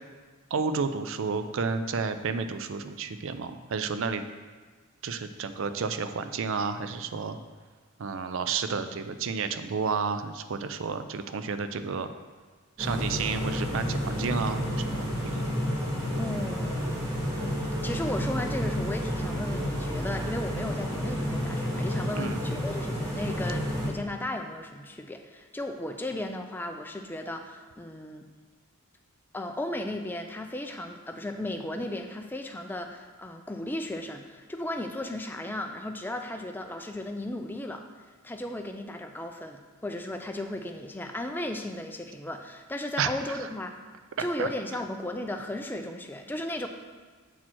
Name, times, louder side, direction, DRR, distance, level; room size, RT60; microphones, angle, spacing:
voice 1, 0.5-4.2 5.0-7.4 8.0-12.1 12.8-15.6 22.1-22.4 43.0-43.4 44.2-44.5, right 5 dB, 60° right, 10 dB, 0.4 m, -31 dB
Engine room, 12.8-23.9, equal, 15° right, 1.2 m, -30 dB
voice 2, 16.2-17.0 17.4-28.3 29.3-37.8 38.2-43.8 44.2-46.7, left 1 dB, 10° left, 5 dB, 0.4 m, -35 dB
7.4 x 4.3 x 4.5 m, 1.4 s
head